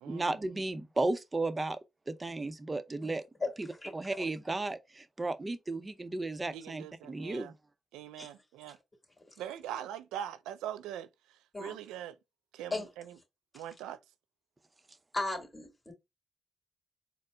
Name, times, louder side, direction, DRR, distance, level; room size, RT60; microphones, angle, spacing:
voice 1, 0.1-1.8 2.1-3.2 3.6-3.7 3.9-7.5, right 2 dB, 30° right, 0.6 m, -34 dB
voice 2, 6.5-7.5 7.9-8.8 9.4-12.2 12.5-13.2 13.5-14.0, right 10 dB, 85° right, 0.3 m, -42 dB
voice 3, 15.1-15.9, left 2 dB, 25° left, 2.3 m, -35 dB
4.2 x 2.1 x 3.7 m
supercardioid pair, 45°, 0 cm